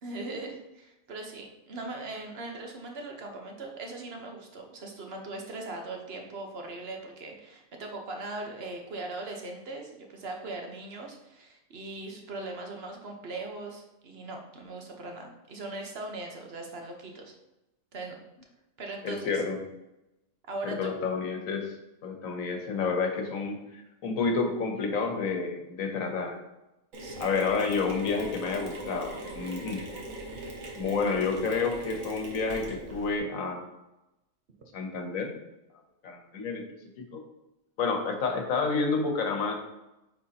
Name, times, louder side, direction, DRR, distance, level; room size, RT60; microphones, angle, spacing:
voice 1, 0.0-17.3 17.9-18.2 18.8-19.4 20.5-21.0 27.0-27.3, right 2 dB, 50° right, 2 dB, 1.2 m, -40 dB
voice 2, 19.0-19.6 20.6-21.7 22.0-26.4 27.2-29.8 30.8-33.7 34.7-35.4 36.0-36.6 37.0-37.2 37.8-39.5, left 4 dB, 80° left, 4 dB, 1.4 m, -29 dB
Mechanisms, 26.9-33.2, right 2 dB, 75° right, 1.6 m, -40 dB
8.9 x 4.3 x 2.8 m, 0.95 s
omnidirectional pair, 1.4 m